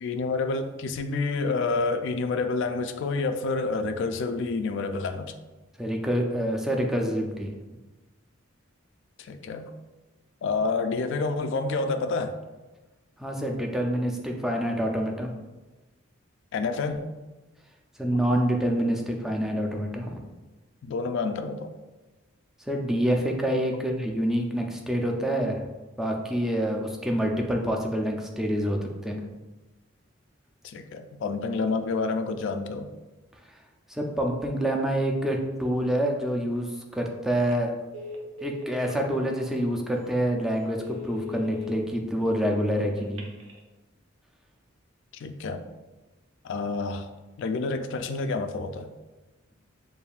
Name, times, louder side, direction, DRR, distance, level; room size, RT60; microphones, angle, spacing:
voice 1, 0.0-5.3 9.2-9.7 10.4-12.4 16.5-17.1 18.1-18.2 20.8-21.7 30.6-32.9 45.1-45.6 46.4-47.1 47.4-48.9, left 3 dB, 65° left, 7 dB, 0.3 m, -28 dB
voice 2, 5.8-7.5 13.2-15.3 18.0-20.2 22.6-25.7 26.0-29.3 33.5-33.6 33.9-37.7 38.4-43.3, equal, ahead, 1 dB, 0.4 m, -27 dB
Telephone, 37.4-37.6 37.9-39.0 39.5-39.7 40.1-40.2 40.6-41.8 43.0-43.6, left 5 dB, 80° right, 0.8 m, -39 dB
6.8 x 2.6 x 2.3 m, 1.2 s
head